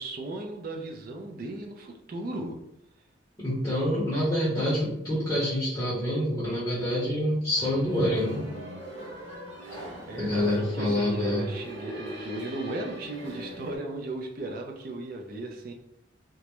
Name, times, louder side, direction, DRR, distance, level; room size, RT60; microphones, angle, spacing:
voice 1, 0.0-2.6 10.1-15.7, right 2 dB, 50° right, 2 dB, 0.4 m, -36 dB
voice 2, 3.4-8.5 10.2-11.5, left 1 dB, 20° left, -9 dB, 0.7 m, -27 dB
sound 1, 7.5-13.8, right 1 dB, 75° right, 0.8 m, -40 dB
2.3 x 2.0 x 2.9 m, 0.81 s
head